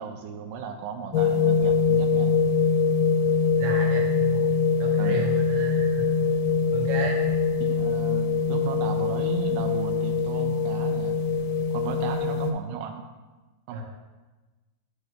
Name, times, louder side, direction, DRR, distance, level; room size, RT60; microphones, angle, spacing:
voice 1, 0.0-2.4 5.0-5.2 7.6-11.2 11.7-13.1 13.7-13.8, right 7 dB, 90° right, 5 dB, 2.2 m, -35 dB
sound 1, 1.1-12.5, left 5 dB, 90° left, 2.2 m, -23 dB
voice 2, 3.6-6.4 6.7-7.2 13.7-13.8, right 3 dB, 70° right, 0 dB, 2.2 m, -33 dB
8.1 x 5.1 x 3.6 m, 1.2 s
omnidirectional pair, 3.7 m